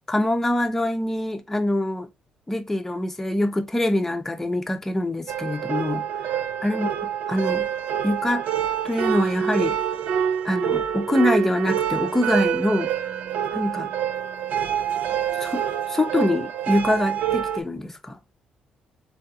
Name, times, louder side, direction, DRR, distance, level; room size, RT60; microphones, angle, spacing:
voice 1, 0.1-2.1 2.5-6.0 6.3-6.9 7.3-7.7 8.0-8.4 8.8-9.8 10.4-12.9 13.5-13.9 15.4-15.6 15.9-18.2, left 1 dB, 10° left, 0.6 m, -24 dB
sound 1, 5.3-17.6, right 9 dB, 70° right, 0.4 m, -26 dB
3.6 x 3.4 x 2.7 m
cardioid pair, 120°, 3 cm